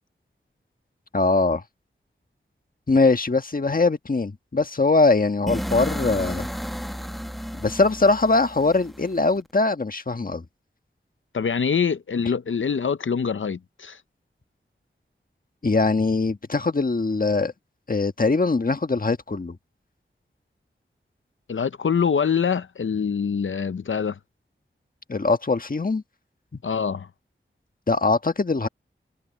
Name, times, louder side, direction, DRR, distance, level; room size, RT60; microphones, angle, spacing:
voice 1, 1.1-1.6 2.9-6.5 7.6-10.4 15.6-17.5 17.9-19.6 25.1-26.0 27.9-28.7, left 3 dB, 45° left, 1.4 m, -21 dB
sound 1, 5.5-9.4, equal, ahead, 1.1 m, -32 dB
voice 2, 11.3-14.0 21.5-24.2 26.6-27.1, left 6 dB, 70° left, 0.7 m, -24 dB
wide cardioid pair, 55°, 21 cm